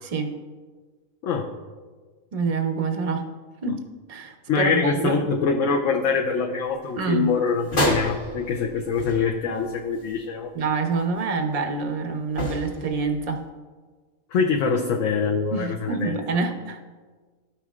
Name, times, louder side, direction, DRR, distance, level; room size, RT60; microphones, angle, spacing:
voice 1, 2.3-3.2 3.6-5.2 7.0-7.3 10.5-13.4 15.5-16.8, right 4 dB, 40° right, 5 dB, 0.5 m, -26 dB
voice 2, 4.5-10.5 14.3-16.2, left 5 dB, 70° left, 0 dB, 1.0 m, -24 dB
sound 1, 7.6-9.8 10.1-10.2 12.3-13.4, equal, 40° left, 1.3 m, -28 dB
13.0 x 5.6 x 2.4 m, 1.4 s
omnidirectional pair, 1.4 m